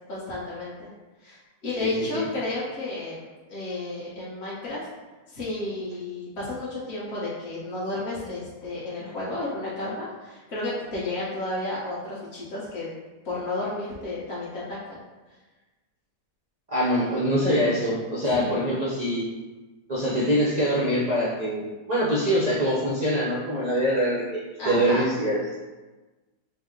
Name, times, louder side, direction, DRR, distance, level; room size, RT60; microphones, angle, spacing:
voice 1, 0.1-0.9 1.2-3.2 3.5-4.9 5.3-12.9 13.2-15.0 18.3-18.7 24.6-25.1, left 2 dB, 45° left, -9 dB, 1.1 m, -32 dB
voice 2, 1.8-2.3 16.7-19.3 19.9-25.6, equal, 55° right, -7 dB, 0.4 m, -24 dB
5.1 x 2.1 x 3.7 m, 1.2 s
omnidirectional pair, 1.9 m